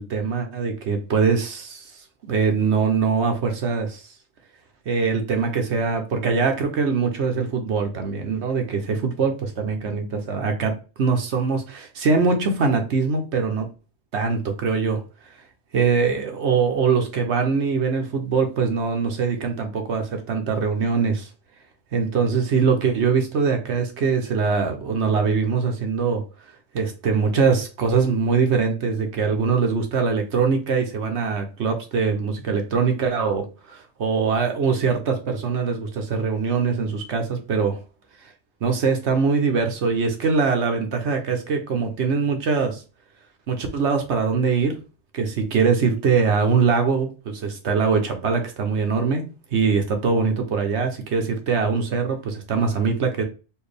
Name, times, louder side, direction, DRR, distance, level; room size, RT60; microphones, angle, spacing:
voice 1, 0.0-1.9 2.2-4.1 4.9-13.7 14.1-15.0 15.7-21.3 21.9-26.2 26.7-37.8 38.6-42.8 43.5-44.7 45.1-49.2 49.5-53.2, right 5 dB, 65° right, 1.0 m, -22 dB
4.4 x 2.6 x 3.3 m
omnidirectional pair, 1.3 m